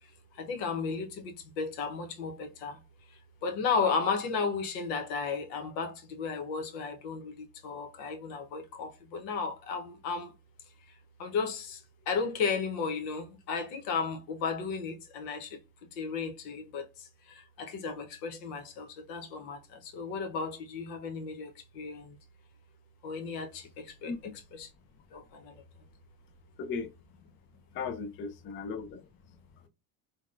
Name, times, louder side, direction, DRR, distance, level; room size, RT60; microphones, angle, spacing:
voice 1, 0.0-2.8 3.1-10.3 11.2-15.6 15.9-22.2 23.0-24.1 24.5-24.7 25.1-25.6, left 5 dB, 80° left, 1.0 m, -34 dB
voice 2, 24.1-24.4 26.6-26.9 27.7-29.1, left 5 dB, 25° left, 0.4 m, -37 dB
3.9 x 2.2 x 2.5 m
supercardioid pair, 100°, 50 cm